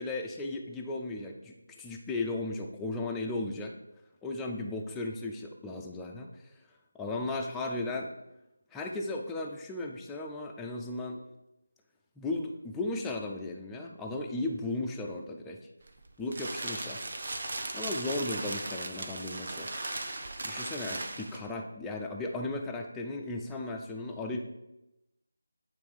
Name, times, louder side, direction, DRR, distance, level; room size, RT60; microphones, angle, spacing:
voice 1, 0.0-3.7 4.2-6.5 6.9-8.1 8.7-11.2 12.2-15.6 16.2-17.0 17.7-19.7 20.4-24.4, left 2 dB, 5° left, 0 dB, 0.5 m, -36 dB
sound 1, 15.8-21.5, right 2 dB, 55° right, 0.8 m, -37 dB
8.6 x 3.2 x 4.7 m, 0.93 s
figure-of-eight pair, 160°, 0 cm